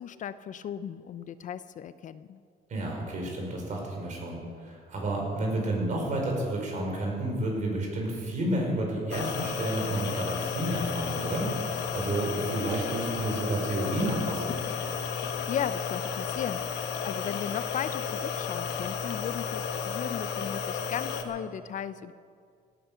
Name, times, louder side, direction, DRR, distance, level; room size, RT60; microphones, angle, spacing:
voice 1, 0.0-2.4 15.2-22.1, left 9 dB, 50° left, 14 dB, 0.5 m, -36 dB
voice 2, 2.7-11.5 11.9-14.5, right 1 dB, 50° right, 0 dB, 5.2 m, -30 dB
sound 1, 9.1-21.2, left 6 dB, 85° left, 1.4 m, -33 dB
17.0 x 10.0 x 6.9 m, 2.2 s
cardioid pair, 110°, 17 cm